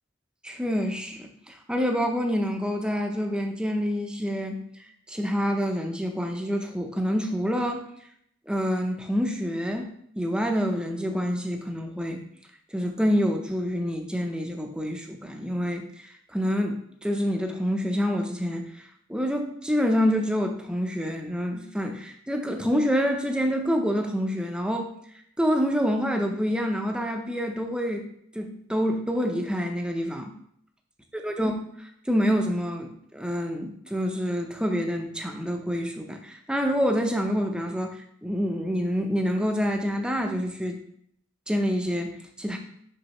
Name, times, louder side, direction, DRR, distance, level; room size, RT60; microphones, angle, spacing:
voice 1, 0.4-4.6 5.1-7.8 8.5-9.9 10.2-12.2 12.7-15.8 16.3-18.7 19.1-24.9 25.4-28.0 28.3-30.3 31.1-31.6 32.1-40.8 41.5-42.6, equal, 5° right, 3 dB, 0.7 m, -27 dB
6.3 x 5.4 x 3.0 m, 0.69 s
head